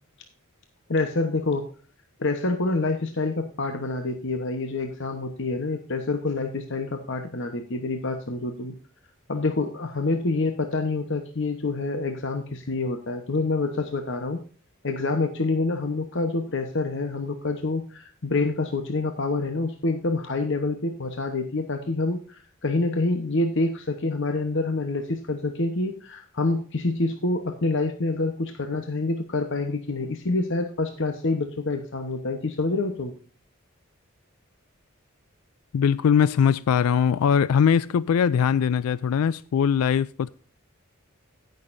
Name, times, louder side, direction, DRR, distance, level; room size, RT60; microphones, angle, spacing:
voice 1, 0.9-1.7 2.2-8.7 9.3-14.4 14.8-33.1, left 3 dB, 60° left, 1.0 m, -27 dB
voice 2, 35.7-40.3, left 7 dB, 90° left, 0.3 m, -21 dB
17.5 x 6.6 x 2.6 m
head